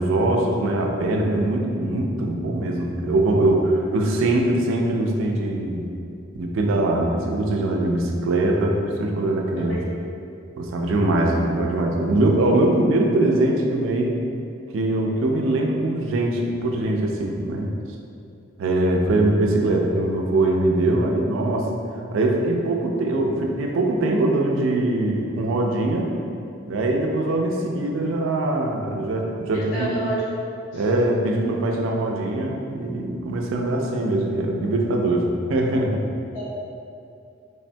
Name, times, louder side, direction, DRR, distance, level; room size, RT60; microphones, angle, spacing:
voice 1, 0.0-5.9 6.3-9.8 10.6-14.2 14.7-17.7 18.6-21.7 22.1-26.1 26.7-29.9 30.7-36.0, right 2 dB, 80° right, 1 dB, 0.4 m, -22 dB
voice 2, 9.5-9.8 29.5-30.2 30.7-30.8 36.3-36.5, right 2 dB, 90° left, -9 dB, 1.0 m, -30 dB
3.4 x 2.1 x 2.5 m, 2.5 s
head